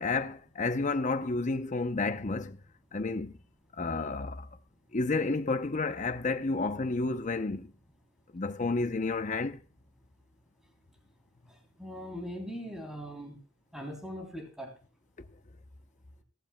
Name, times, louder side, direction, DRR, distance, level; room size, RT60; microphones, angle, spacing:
voice 1, 0.0-2.6 2.9-3.3 3.8-4.5 4.9-7.7 8.3-9.6, left 3 dB, 40° left, 0.7 m, -31 dB
voice 2, 11.8-13.4 13.7-14.7, equal, 5° right, 3.3 m, -40 dB
16.0 x 14.5 x 2.2 m
head